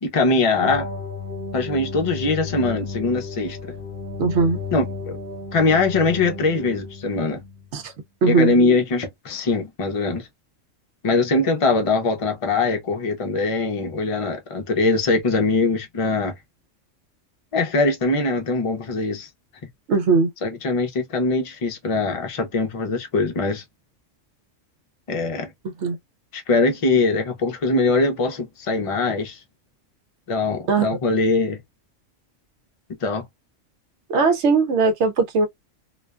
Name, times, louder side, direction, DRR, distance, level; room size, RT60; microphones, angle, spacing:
voice 1, 0.0-0.9 1.5-3.6 4.7-5.2 5.5-7.4 8.3-10.3 11.0-16.3 17.5-19.3 20.4-23.6 25.1-25.5 26.3-29.4 30.3-31.6 33.0-33.2, left 3 dB, 40° left, 0.5 m, -22 dB
sound 1, 0.6-7.7, left 3 dB, 40° right, 1.3 m, -33 dB
voice 2, 4.2-4.6 7.7-7.9 8.2-8.5 19.9-20.3 25.6-26.0 30.7-30.9 34.1-35.5, right 4 dB, 70° right, 0.8 m, -19 dB
2.4 x 2.1 x 2.3 m
omnidirectional pair, 1.3 m